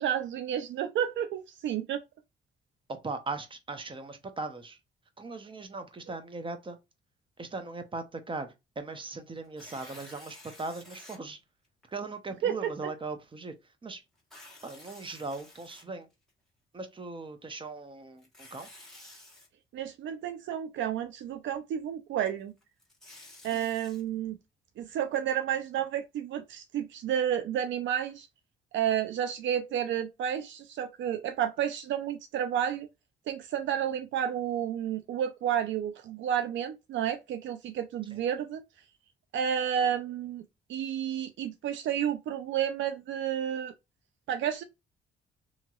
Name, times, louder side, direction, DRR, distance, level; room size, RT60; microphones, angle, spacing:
voice 1, 0.0-2.0 12.4-12.6 19.7-22.5 23.4-24.4 24.8-28.3 28.7-32.9 33.3-38.6 39.3-40.4 40.7-43.7 44.3-44.6, right 9 dB, 70° right, 0.4 m, -31 dB
voice 2, 2.9-4.8 5.2-6.8 7.4-11.4 11.9-14.0 14.6-16.1 16.7-18.7 23.5-23.7 38.1-38.2, right 3 dB, 25° right, 0.7 m, -39 dB
Tearing, 9.4-11.2 11.8-11.9 14.2-16.3 18.2-19.5 22.6-24.0, left 1 dB, ahead, 1.4 m, -51 dB
2.8 x 2.8 x 2.3 m
cardioid pair, 90°, 20 cm